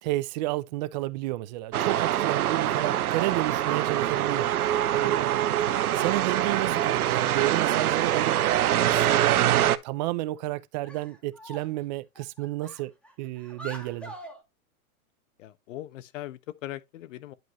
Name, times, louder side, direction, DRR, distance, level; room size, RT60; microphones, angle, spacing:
voice 1, 0.0-5.5 5.9-8.4 8.8-12.9 13.2-14.1, right 18 dB, 30° right, 0.5 m, -31 dB
sound 1, 1.7-9.8, right 12 dB, 90° right, 0.8 m, -24 dB
voice 2, 2.5-3.0 15.4-17.3, left 14 dB, 60° left, 1.1 m, -40 dB
sound 2, 10.2-10.4 10.8-11.8 12.2-14.4, right 1 dB, 5° left, 1.5 m, -46 dB
10.5 x 5.1 x 3.0 m
hypercardioid pair, 140°, 43 cm